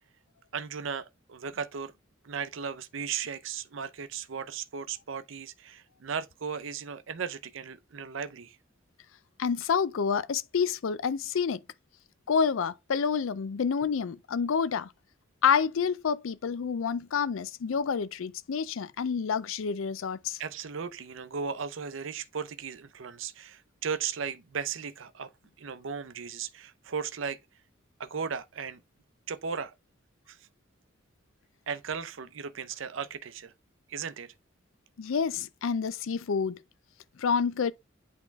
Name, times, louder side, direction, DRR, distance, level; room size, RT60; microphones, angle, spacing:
voice 1, 0.5-1.9 2.2-8.6 20.4-25.3 25.6-27.4 28.0-28.8 29.3-29.7 30.3-30.4 31.7-33.5 33.9-34.3, right 6 dB, 80° right, 0.6 m, -36 dB
voice 2, 9.4-11.6 12.3-14.9 15.4-20.4 35.0-36.6 37.2-37.7, left 6 dB, 85° left, 0.4 m, -28 dB
8.2 x 3.6 x 3.5 m
head